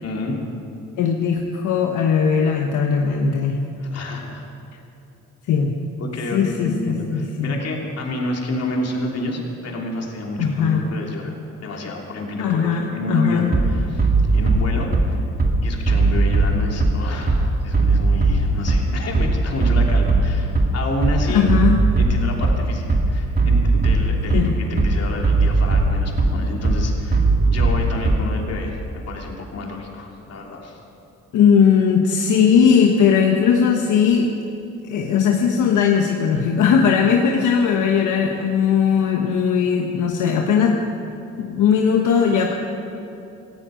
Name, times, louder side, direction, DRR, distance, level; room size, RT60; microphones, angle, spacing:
voice 1, 0.0-0.4 3.8-4.4 6.0-15.2 15.6-21.5 22.0-30.8, left 2 dB, 55° left, -1 dB, 3.2 m, -29 dB
voice 2, 1.0-3.6 5.5-5.7 6.3-7.6 10.4-10.8 12.4-13.5 21.3-21.8 24.3-24.5 31.3-34.3 34.8-40.8 41.4-42.5, left 7 dB, 80° left, 2 dB, 1.2 m, -18 dB
Bass drum, 13.5-28.5, right 3 dB, 30° right, 2.2 m, -19 dB
18.0 x 15.5 x 5.1 m, 2.9 s
cardioid pair, 90°, 30 cm